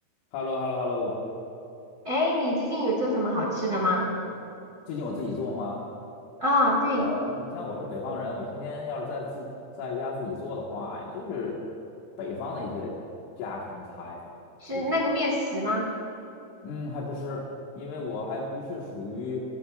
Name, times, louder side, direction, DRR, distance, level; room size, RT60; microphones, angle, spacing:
voice 1, 0.3-1.1 4.9-5.9 6.9-9.5 9.8-11.6 12.2-12.9 13.4-14.2 14.8-15.0 16.6-17.5 17.8-19.5, left 3 dB, 80° left, -4 dB, 4.1 m, -33 dB
voice 2, 2.0-4.1 6.4-7.1 14.6-15.9, left 1 dB, 45° right, -3 dB, 1.3 m, -25 dB
27.5 x 17.5 x 2.5 m, 3.0 s
omnidirectional pair, 5.4 m